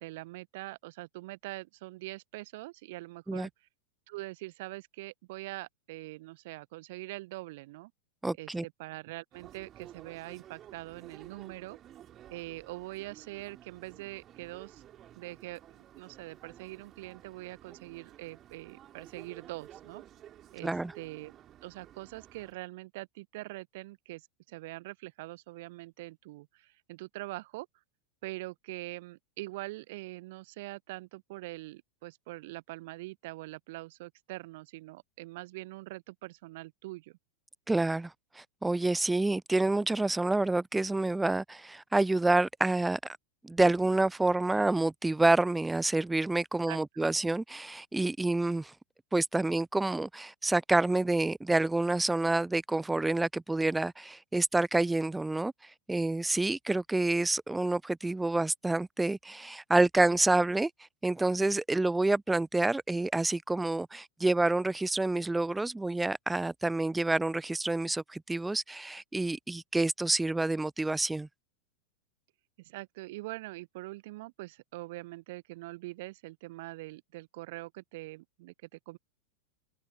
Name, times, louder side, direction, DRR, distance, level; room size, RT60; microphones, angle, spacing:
voice 1, 0.0-3.5 4.1-7.9 8.4-11.8 12.3-14.8 15.2-20.0 20.5-21.3 21.6-24.2 24.5-27.7 28.2-37.2 46.7-47.1 72.6-79.0, right 20 dB, 50° right, 1.0 m, -43 dB
voice 2, 8.2-8.6 20.6-20.9 37.7-43.2 43.4-48.7 49.1-60.7 61.0-71.3, right 2 dB, 5° right, 0.6 m, -28 dB
sound 1, 9.3-22.5, right 11 dB, 30° right, 4.0 m, -53 dB
figure-of-eight pair, 90°, 0 cm